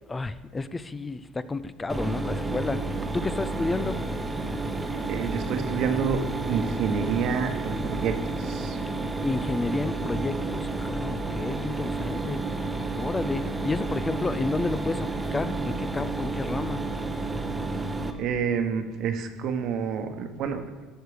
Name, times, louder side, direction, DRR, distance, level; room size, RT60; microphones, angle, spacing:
voice 1, 0.0-4.0 8.9-12.4 13.0-16.8, left 3 dB, 15° left, 15 dB, 0.5 m, -31 dB
Mechanisms, 1.9-18.1, right 2 dB, 10° right, 1.0 m, -31 dB
voice 2, 5.1-6.2 6.5-8.8 18.2-20.6, right 6 dB, 60° right, 7 dB, 1.1 m, -28 dB
12.5 x 6.6 x 5.0 m, 1.4 s
supercardioid pair, 115°, 0 cm